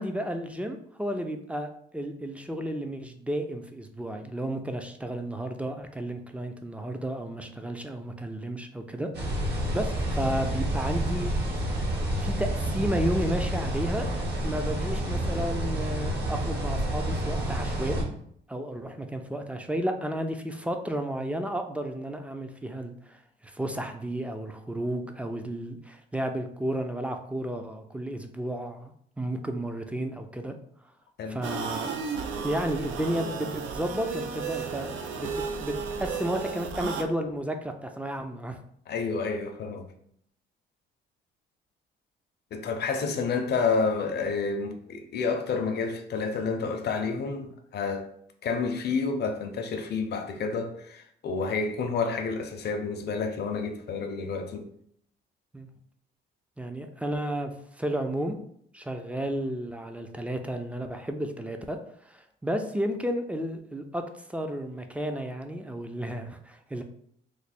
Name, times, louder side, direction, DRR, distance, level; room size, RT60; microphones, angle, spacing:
voice 1, 0.0-9.1 9.7-11.3 12.2-14.1 14.4-18.1 18.5-30.5 31.3-31.9 32.4-34.9 35.2-38.6 55.5-55.7 56.6-57.5 57.8-58.4 58.7-61.8 62.0-64.0 64.3-66.8, right 1 dB, 5° right, 0.4 m, -32 dB
sound 1, 9.1-18.0, right 1 dB, 60° right, 1.0 m, -29 dB
sound 2, 31.4-37.0, right 5 dB, 80° right, 0.5 m, -34 dB
voice 2, 38.9-39.9 42.5-48.1 48.4-54.7, left 4 dB, 55° left, 0.6 m, -29 dB
3.1 x 2.1 x 4.2 m
cardioid pair, 90°, 20 cm